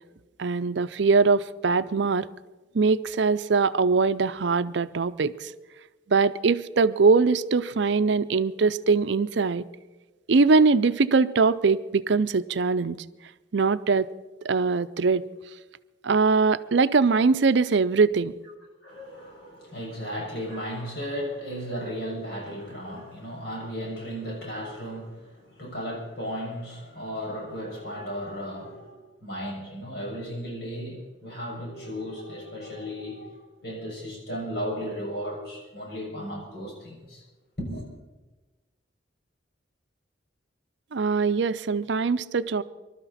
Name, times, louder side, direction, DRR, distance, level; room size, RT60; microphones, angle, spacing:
voice 1, 0.4-2.3 2.7-5.5 6.1-9.6 10.3-13.0 13.5-14.1 14.4-15.3 16.0-18.3 40.9-42.6, right 4 dB, 70° right, 13 dB, 0.5 m, -22 dB
voice 2, 18.8-37.2 37.6-37.9, equal, 60° left, -1 dB, 6.3 m, -35 dB
25.0 x 12.5 x 4.2 m, 1.2 s
head